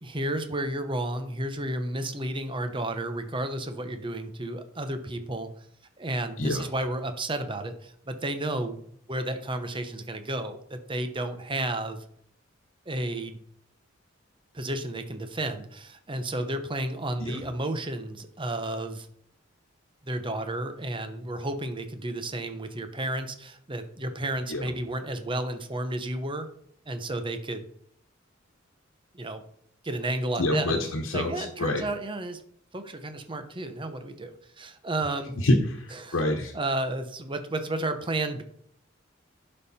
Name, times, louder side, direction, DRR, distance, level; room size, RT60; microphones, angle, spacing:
voice 1, 0.0-5.5 6.0-8.8 9.1-12.0 12.9-13.4 14.5-19.1 20.0-26.5 26.9-27.7 29.1-29.4 29.8-30.8 31.1-32.4 32.7-35.3 36.0-36.2 36.5-38.4, right 1 dB, 25° right, 8 dB, 0.9 m, -32 dB
voice 2, 30.4-31.8 35.4-36.5, left 1 dB, 80° left, 1 dB, 1.2 m, -27 dB
11.0 x 5.5 x 4.3 m, 0.66 s
head